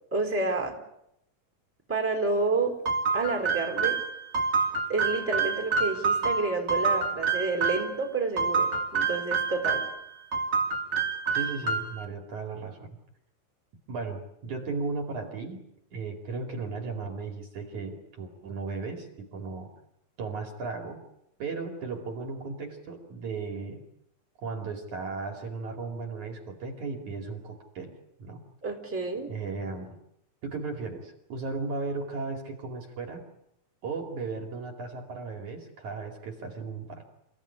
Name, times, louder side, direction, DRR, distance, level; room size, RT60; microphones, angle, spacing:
voice 1, 0.1-0.8 1.9-2.7 3.1-4.0 4.9-9.8 28.6-29.3, right 3 dB, 5° right, 3 dB, 4.0 m, -29 dB
sound 1, 2.9-7.9 8.4-10.0 10.3-12.0, right 5 dB, 30° right, 3.0 m, -27 dB
voice 2, 11.3-12.9 13.9-15.6 15.9-19.7 20.2-21.0 21.4-23.8 24.4-27.9 28.2-28.4 29.3-30.0 30.4-33.2 33.8-37.0, right 4 dB, 50° right, 4 dB, 3.6 m, -36 dB
28.5 x 16.5 x 9.9 m, 0.79 s
omnidirectional pair, 4.5 m